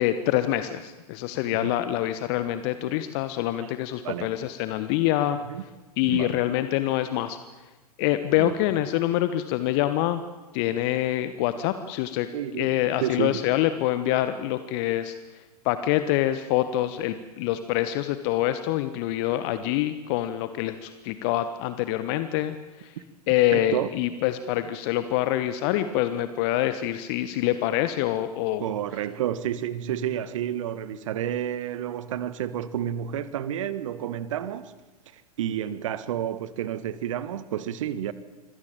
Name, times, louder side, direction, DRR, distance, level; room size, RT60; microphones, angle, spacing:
voice 1, 0.0-5.4 6.0-7.4 8.0-10.2 10.5-12.3 12.6-15.1 15.6-22.9 23.3-28.6, left 13 dB, 40° left, 1.3 m, -25 dB
voice 2, 4.0-4.4 5.3-5.6 6.0-6.4 8.3-8.5 12.3-13.4 23.5-23.9 28.6-34.7 35.1-38.1, right 10 dB, 55° right, 1.7 m, -30 dB
25.5 x 17.5 x 8.9 m
figure-of-eight pair, 105°, 20 cm